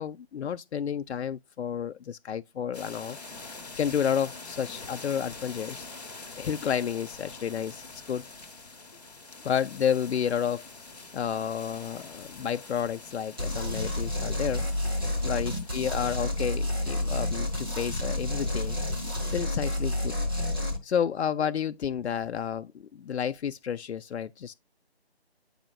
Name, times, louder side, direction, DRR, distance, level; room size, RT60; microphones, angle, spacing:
voice 1, 0.0-3.2 3.8-5.9 6.4-8.2 9.4-10.7 11.1-14.7 15.2-18.8 19.3-20.1 20.8-24.5, left 8 dB, 90° left, 0.5 m, -31 dB
sound 1, 2.7-19.2, left 3 dB, 40° left, 1.1 m, -46 dB
sound 2, 13.4-20.8, left 1 dB, 20° right, 1.0 m, -30 dB
9.1 x 4.9 x 2.3 m
figure-of-eight pair, 175°, 32 cm